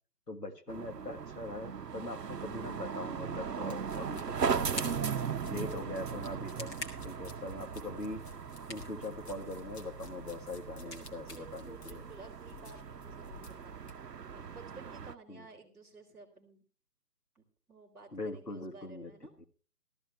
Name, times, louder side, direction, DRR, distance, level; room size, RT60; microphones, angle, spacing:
voice 1, 0.3-5.0 5.5-6.8 7.0-8.3 8.7-12.0 14.4-14.5 15.3-15.5 18.1-19.1 19.4-19.5, left 2 dB, 90° left, 5 dB, 2.0 m, -42 dB
sound 1, 0.7-15.1, right 6 dB, 80° right, 0.8 m, -38 dB
sound 2, 3.6-12.8, left 1 dB, 15° left, 1.3 m, -50 dB
sound 3, 3.7-13.9, left 5 dB, 40° left, 1.9 m, -54 dB
voice 2, 11.2-16.6 17.3-17.4 17.7-19.3, right 3 dB, ahead, -11 dB, 2.5 m, -54 dB
14.0 x 14.0 x 3.2 m, 0.39 s
figure-of-eight pair, 150°, 48 cm